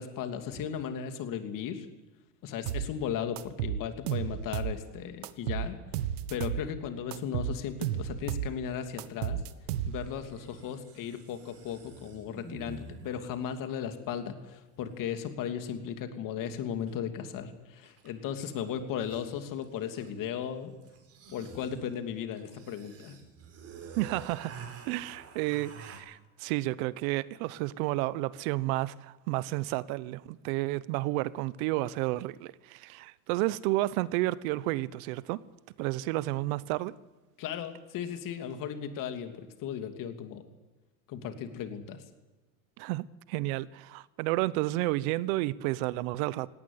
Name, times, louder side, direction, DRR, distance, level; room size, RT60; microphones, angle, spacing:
voice 1, 0.0-1.9 2.4-5.8 6.3-9.4 9.9-20.7 21.3-23.2 37.4-40.4 41.1-42.0, left 8 dB, 45° left, 2.9 m, -36 dB
sound 1, 2.7-2.9 3.4-4.8 5.2-6.7 7.1-8.5 9.0-10.2, right 10 dB, 90° right, 1.5 m, -33 dB
sound 2, 8.7-8.8 9.9-13.4 16.9-17.0 17.8-18.2 18.5-18.6 18.8-20.3 20.8-26.0, right 5 dB, 35° right, 4.6 m, -48 dB
voice 2, 24.0-24.5 24.8-35.4 35.8-36.9 42.8-46.5, right 18 dB, 65° right, 1.0 m, -31 dB
18.5 x 17.5 x 9.8 m
supercardioid pair, 130°, 44 cm